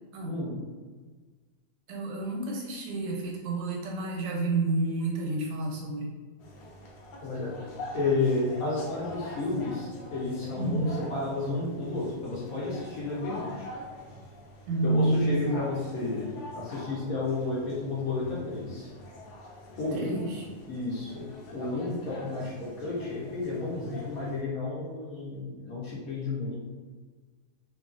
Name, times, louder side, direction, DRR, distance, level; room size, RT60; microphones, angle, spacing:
voice 1, 0.2-0.6 7.2-7.5 7.9-13.7 14.8-18.9 19.8-20.2 20.7-21.3 21.5-26.6, left 3 dB, 60° left, -6 dB, 1.0 m, -31 dB
voice 2, 1.9-6.1 10.5-11.0 14.7-15.5 19.9-20.5, right 2 dB, 85° right, -1 dB, 1.3 m, -29 dB
sound 1, 6.4-24.4, left 1 dB, 90° left, 1.3 m, -45 dB
2.9 x 2.4 x 2.4 m, 1.4 s
omnidirectional pair, 1.9 m